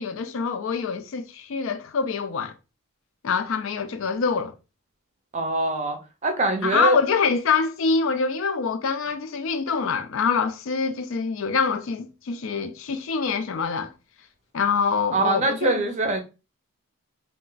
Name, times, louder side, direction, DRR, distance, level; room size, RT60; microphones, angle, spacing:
voice 1, 0.0-2.5 3.2-4.5 6.6-13.9 14.5-15.8, left 5 dB, 60° left, 0.4 m, -25 dB
voice 2, 5.3-7.0 15.1-16.2, right 2 dB, 30° right, 0.5 m, -23 dB
2.4 x 2.2 x 3.8 m
head